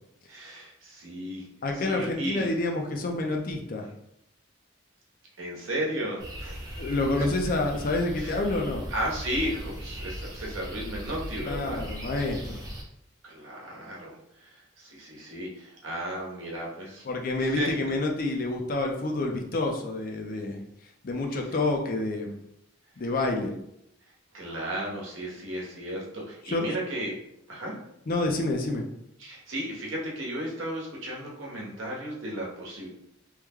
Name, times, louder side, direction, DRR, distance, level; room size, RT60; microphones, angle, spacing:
voice 1, 0.3-1.5 1.7-2.5 5.4-6.8 7.2-7.3 8.2-8.4 8.9-11.8 13.2-17.0 17.4-17.7 21.4-21.5 24.3-27.1 27.5-27.8 29.2-32.9, right 1 dB, 75° right, -3 dB, 0.9 m, -34 dB
voice 2, 1.6-3.9 6.7-8.9 11.4-12.6 17.1-20.6 21.0-22.4 23.0-23.5 26.4-26.7 28.1-28.8, left 2 dB, 45° left, 2 dB, 0.4 m, -28 dB
sound 1, 6.2-12.8, equal, 20° right, 0.6 m, -38 dB
3.1 x 2.1 x 3.5 m, 0.78 s
head